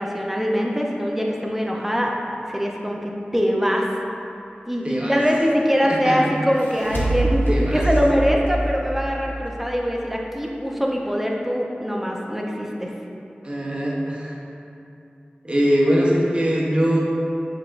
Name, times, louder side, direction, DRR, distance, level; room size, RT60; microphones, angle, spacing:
voice 1, 0.0-2.1 2.5-3.9 4.7-12.9, equal, 5° right, -1 dB, 0.6 m, -23 dB
voice 2, 4.8-5.2 5.8-6.3 7.5-7.8 13.4-14.4 15.4-17.0, equal, 35° right, -4 dB, 0.8 m, -22 dB
sound 1, 6.3-9.7, right 1 dB, 90° left, 0.6 m, -25 dB
5.5 x 3.5 x 2.5 m, 2.7 s
wide cardioid pair, 45°, 3 cm